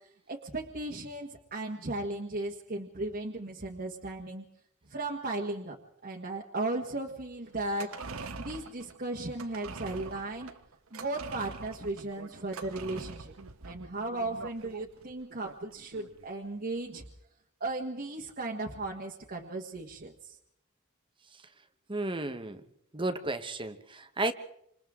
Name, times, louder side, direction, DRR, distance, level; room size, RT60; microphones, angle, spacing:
voice 1, 0.3-4.4 4.9-5.8 6.0-7.9 8.4-10.5 10.9-13.3 13.6-17.0 17.6-20.3, right 2 dB, 45° right, -1 dB, 1.5 m, -36 dB
sound 1, 7.6-16.2 16.5-16.6, right 4 dB, 85° right, 1.2 m, -44 dB
voice 2, 21.9-22.6 22.9-24.3, right 2 dB, 25° right, 9 dB, 1.1 m, -33 dB
27.5 x 27.0 x 3.7 m, 0.76 s
head